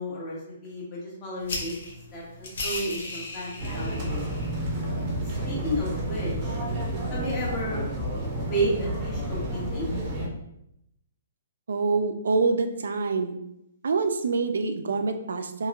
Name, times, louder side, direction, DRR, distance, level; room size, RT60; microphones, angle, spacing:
voice 1, 0.0-1.8 2.1-4.4 5.4-6.6 7.1-7.8 8.5-9.9, right 1 dB, 20° left, -5 dB, 0.9 m, -32 dB
sound 1, 1.4-7.6, left 2 dB, 65° left, 0.8 m, -39 dB
sound 2, 3.6-10.3, right 1 dB, 25° right, 0.6 m, -30 dB
voice 2, 11.7-13.4 13.8-15.7, right 4 dB, 85° right, 8 dB, 0.4 m, -26 dB
2.9 x 2.8 x 2.4 m, 0.79 s
hypercardioid pair, 170°, 0 cm